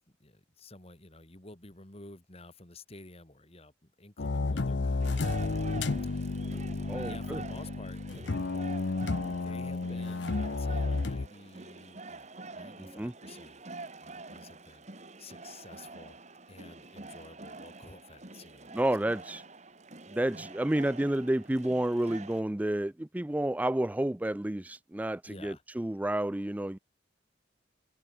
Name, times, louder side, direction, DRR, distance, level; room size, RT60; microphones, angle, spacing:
voice 1, 0.1-8.3 9.4-13.6 14.0-14.9 15.2-16.2 16.5-19.0 25.2-25.6, left 2 dB, 30° left, 2.6 m, -52 dB
sound 1, 4.2-11.3, left 3 dB, 65° left, 0.7 m, -32 dB
sound 2, 5.0-22.4, right 3 dB, 35° right, 2.0 m, -47 dB
voice 2, 6.9-7.4 12.8-13.1 18.7-19.4 20.1-26.8, right 1 dB, 10° right, 0.3 m, -30 dB
head